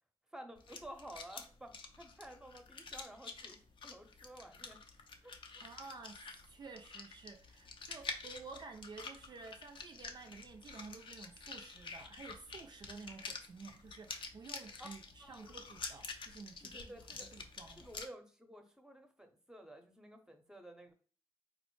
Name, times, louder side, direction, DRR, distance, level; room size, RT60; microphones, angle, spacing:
voice 1, 0.3-3.6 3.8-4.8 5.2-5.6 14.8-14.9 15.2-15.5 16.6-17.3 17.8-20.9, right 1 dB, 5° right, 0.7 m, -53 dB
sound 1, 0.5-18.1, left 4 dB, 55° left, 0.5 m, -49 dB
voice 2, 5.6-17.9, right 4 dB, 45° right, 0.3 m, -52 dB
4.0 x 2.0 x 3.0 m
cardioid pair, 55°, 10 cm